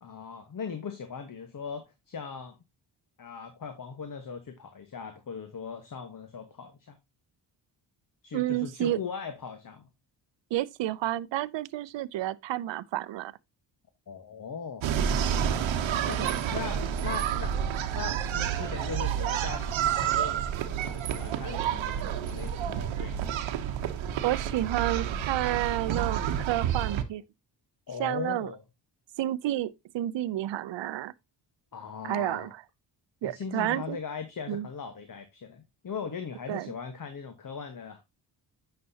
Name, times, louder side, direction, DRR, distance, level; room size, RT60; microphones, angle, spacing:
voice 1, 0.0-2.6 3.2-7.0 8.2-9.8 14.1-15.3 15.5-15.6 16.1-17.5 17.9-23.3 27.9-28.6 31.7-32.5 33.2-38.0, left 6 dB, 45° left, 1.3 m, -39 dB
voice 2, 8.3-9.0 10.5-13.3 16.2-16.4 24.2-27.2 28.0-28.5 29.2-31.1 32.0-32.6 33.2-34.0 34.5-34.7 36.5-36.7, right 14 dB, 70° right, 0.6 m, -30 dB
sound 1, 14.8-27.0, right 9 dB, 90° right, 1.0 m, -29 dB
9.3 x 6.0 x 2.8 m
cardioid pair, 75°, 45 cm